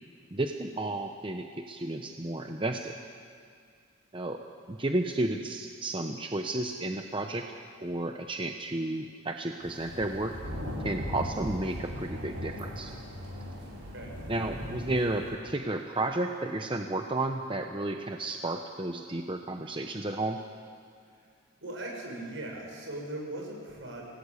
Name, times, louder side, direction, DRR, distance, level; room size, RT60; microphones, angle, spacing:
voice 1, 0.3-3.0 4.1-7.5 7.8-10.3 10.8-12.9 14.3-20.4, right 2 dB, 25° right, 4 dB, 0.8 m, -32 dB
sound 1, 9.6-15.3, left 1 dB, 85° right, 6.2 m, -38 dB
voice 2, 21.6-24.0, right 1 dB, 65° right, -1 dB, 7.0 m, -39 dB
27.5 x 18.5 x 8.3 m, 2.2 s
head